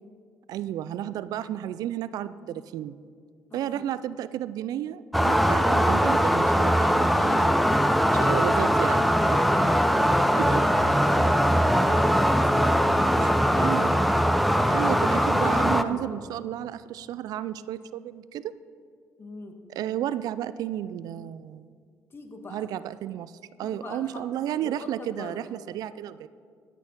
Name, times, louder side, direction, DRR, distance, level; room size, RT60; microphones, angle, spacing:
voice 1, 0.5-3.0 3.5-7.6 8.2-9.4 10.4-10.6 13.2-13.3 13.6-14.0 14.7-18.5 19.8-21.7 22.5-26.3, right 11 dB, 70° right, 16 dB, 0.3 m, -32 dB
voice 2, 3.5-3.9 7.9-8.4 9.2-13.7 14.5-16.1 19.2-19.6 22.1-22.6 23.6-24.2 24.6-25.4, left 3 dB, 35° left, 5 dB, 1.5 m, -41 dB
sound 1, 5.1-15.8, equal, ahead, 0.5 m, -21 dB
14.5 x 6.4 x 5.3 m, 2.1 s
supercardioid pair, 80°, 7 cm